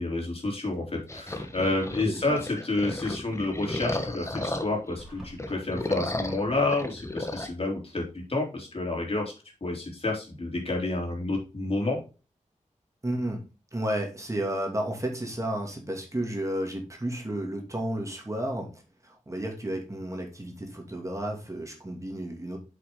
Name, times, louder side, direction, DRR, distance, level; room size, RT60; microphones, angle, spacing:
voice 1, 0.0-9.3 9.6-12.0, left 2 dB, 50° left, 0 dB, 3.6 m, -29 dB
sound 1, 1.1-4.9 5.3-7.5, left 2 dB, 20° left, 1.2 m, -34 dB
voice 2, 2.0-2.4 13.0-13.4 13.7-22.6, right 1 dB, 25° right, 1 dB, 2.5 m, -32 dB
sound 2, 5.0-5.4, equal, 5° right, 4.3 m, -44 dB
7.8 x 6.1 x 3.8 m, 0.32 s
wide cardioid pair, 60°, 13 cm